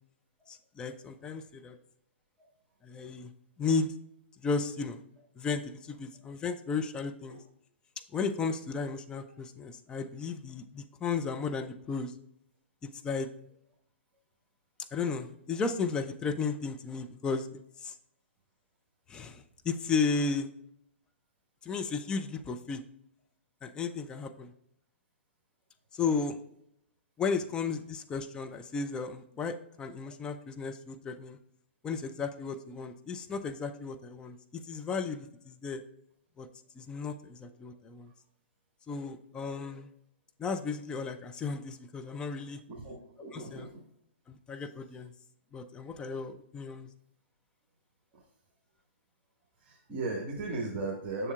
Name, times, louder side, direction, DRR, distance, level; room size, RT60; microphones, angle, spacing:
voice 1, 0.5-1.8 2.8-3.3 3.6-3.9 4.4-5.0 5.4-7.4 8.1-12.2 12.8-13.3 14.9-17.5 17.8-18.0 19.1-20.5 21.6-22.8 23.6-24.5 25.9-26.4 27.2-31.4 31.8-35.8 36.4-36.5 36.8-38.1 38.9-39.9 40.4-42.6 43.3-43.7 44.3-45.1 45.5-46.9, left 5 dB, 15° left, 7 dB, 0.4 m, -34 dB
voice 2, 42.7-43.7 48.1-48.2 49.6-51.3, right 3 dB, 25° right, -3 dB, 1.5 m, -37 dB
7.0 x 6.8 x 2.3 m, 0.75 s
figure-of-eight pair, 120°, 6 cm